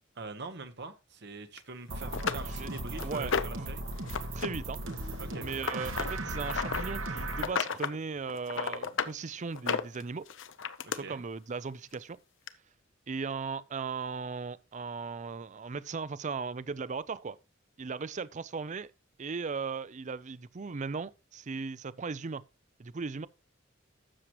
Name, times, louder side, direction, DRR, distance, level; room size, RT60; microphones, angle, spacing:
voice 1, 0.2-3.8 5.2-5.5 10.8-11.2, right 3 dB, 60° right, 1.2 m, -43 dB
sound 1, 1.6-1.7 2.1-3.7 4.1-4.5 4.7-6.8 7.3-8.0 8.3-9.1 9.5-11.0 11.9-12.0 12.5-12.6, left 6 dB, 70° left, 0.7 m, -33 dB
sound 2, 1.9-7.5, right 2 dB, 80° right, 1.9 m, -37 dB
voice 2, 3.0-3.6 4.3-4.9 5.4-10.2 10.9-12.2 13.1-17.4 17.8-18.9 19.2-22.4 22.8-23.3, right 4 dB, 40° right, 0.5 m, -37 dB
12.5 x 7.6 x 3.0 m
head